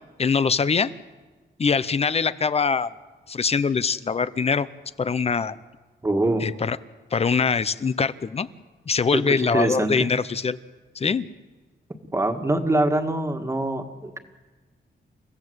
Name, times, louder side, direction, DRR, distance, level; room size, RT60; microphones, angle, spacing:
voice 1, 0.2-0.9 1.6-2.9 3.3-4.7 5.0-5.6 6.4-6.8 7.1-8.5 8.9-10.6 10.9-11.3, left 5 dB, 35° left, 15 dB, 0.7 m, -23 dB
voice 2, 6.0-6.4 9.1-10.1 12.1-14.2, right 1 dB, 15° right, 4 dB, 1.8 m, -24 dB
29.5 x 16.0 x 8.0 m, 1.3 s
wide cardioid pair, 165°, 19 cm